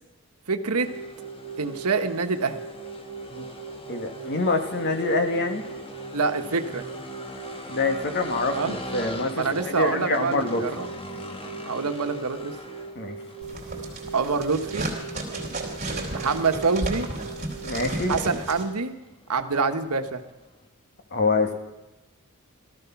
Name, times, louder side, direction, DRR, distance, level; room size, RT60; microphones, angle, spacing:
voice 1, 0.5-0.9 1.6-2.6 6.1-7.0 8.5-8.8 9.4-10.9 11.7-12.6 14.1-14.9 16.1-17.1 18.1-18.9 19.3-20.2, right 4 dB, 85° right, 8 dB, 1.2 m, -26 dB
sound 1, 0.8-18.8, right 5 dB, 70° left, 2.8 m, -40 dB
sound 2, 0.8-20.7, left 1 dB, 25° left, 1.4 m, -42 dB
voice 2, 3.9-5.6 7.7-10.6 13.0-13.2 17.6-18.1 21.1-21.5, left 3 dB, 50° left, 6 dB, 1.8 m, -26 dB
sound 3, 13.4-18.6, right 2 dB, 35° right, 3.7 m, -33 dB
17.0 x 14.0 x 5.9 m, 1.0 s
head